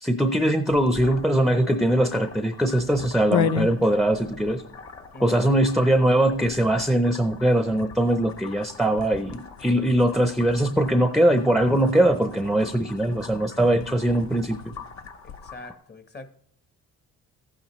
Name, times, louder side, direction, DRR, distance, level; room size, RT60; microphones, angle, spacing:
voice 1, 0.0-4.6 5.2-14.7, right 1 dB, ahead, 0.6 m, -21 dB
sound 1, 0.7-15.6, left 7 dB, 65° left, 0.7 m, -36 dB
sound 2, 0.9-15.7, left 4 dB, 50° left, 1.7 m, -44 dB
voice 2, 5.1-5.5 15.2-16.3, left 2 dB, 35° left, 1.0 m, -43 dB
15.0 x 8.7 x 3.1 m
cardioid pair, 90°, 30 cm